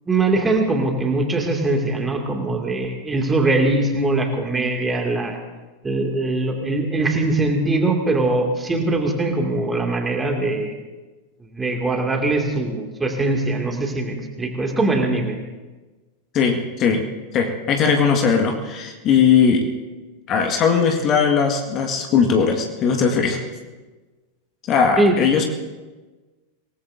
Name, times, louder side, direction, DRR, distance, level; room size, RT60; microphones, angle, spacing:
voice 1, 0.1-5.4 5.8-10.7 11.4-15.4 25.0-25.2, right 2 dB, 10° right, 2 dB, 2.4 m, -21 dB
voice 2, 16.3-17.0 17.3-19.6 20.3-23.4 24.7-25.4, left 6 dB, 35° left, 3 dB, 1.8 m, -19 dB
26.0 x 18.5 x 2.7 m, 1.3 s
figure-of-eight pair, 90°, 0 cm